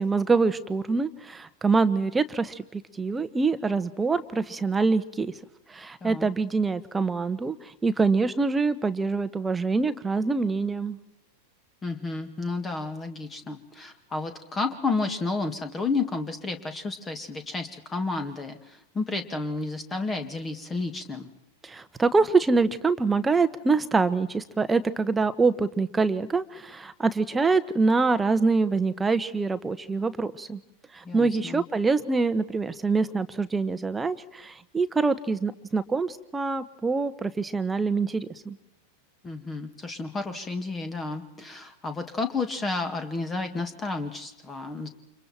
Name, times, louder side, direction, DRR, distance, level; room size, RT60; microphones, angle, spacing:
voice 1, 0.0-5.3 5.7-7.6 7.8-11.0 21.6-30.6 30.9-38.6, right 4 dB, 10° right, 11 dB, 1.4 m, -25 dB
voice 2, 11.8-21.3 31.1-31.6 39.2-44.9, left 3 dB, 15° left, 7 dB, 2.2 m, -31 dB
30.0 x 27.0 x 4.5 m, 0.86 s
figure-of-eight pair, 90°, 0 cm